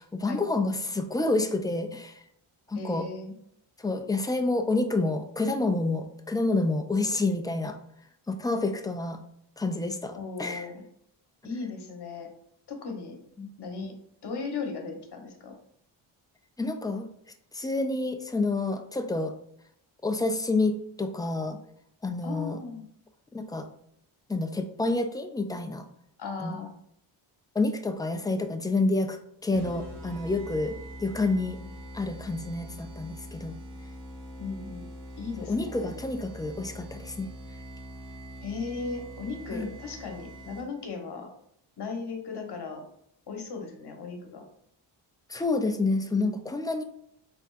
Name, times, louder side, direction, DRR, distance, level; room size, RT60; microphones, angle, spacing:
voice 1, 0.0-2.2 2.7-3.1 3.8-7.8 8.3-9.2 9.6-10.7 13.4-13.5 16.6-17.1 17.5-19.4 20.0-21.6 22.0-22.6 23.3-23.7 24.3-25.9 26.4-26.6 27.6-31.6 31.9-33.6 35.5-37.3 39.5-39.7 45.3-46.8, left 2 dB, 10° left, 6 dB, 0.3 m, -28 dB
voice 2, 2.7-3.3 10.1-10.8 11.4-12.3 12.7-13.2 13.6-13.9 14.2-15.5 22.2-22.8 26.2-26.7 34.4-34.8 35.2-35.9 38.4-41.3 41.8-42.8 43.3-44.4, left 4 dB, 55° left, 3 dB, 1.2 m, -36 dB
sound 1, 29.5-40.9, equal, 60° right, 1.5 m, -43 dB
4.3 x 3.6 x 2.4 m, 0.73 s
cardioid pair, 100°, 47 cm